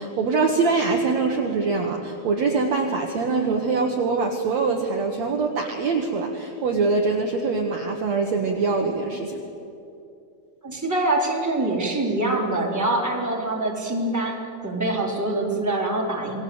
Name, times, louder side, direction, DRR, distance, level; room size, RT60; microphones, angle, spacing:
voice 1, 0.0-9.4, right 4 dB, 55° right, 2 dB, 2.4 m, -23 dB
voice 2, 10.6-16.4, right 2 dB, 5° right, -2 dB, 3.7 m, -25 dB
28.0 x 21.0 x 8.0 m, 2.7 s
omnidirectional pair, 4.4 m